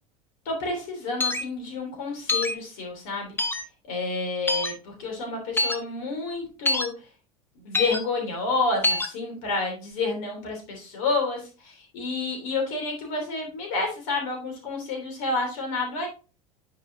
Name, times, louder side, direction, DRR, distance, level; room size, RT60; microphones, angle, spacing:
voice 1, 0.4-3.4 3.9-6.9 7.6-16.1, left 3 dB, 60° left, 1 dB, 3.1 m, -29 dB
sound 1, 1.2-1.4 2.3-2.5 3.4-3.6 4.5-4.7 5.6-5.8 6.7-6.9 7.7-8.0 8.8-9.1, left 2 dB, 10° left, 0.9 m, -24 dB
9.8 x 4.9 x 2.7 m, 0.33 s
figure-of-eight pair, 75°, 19 cm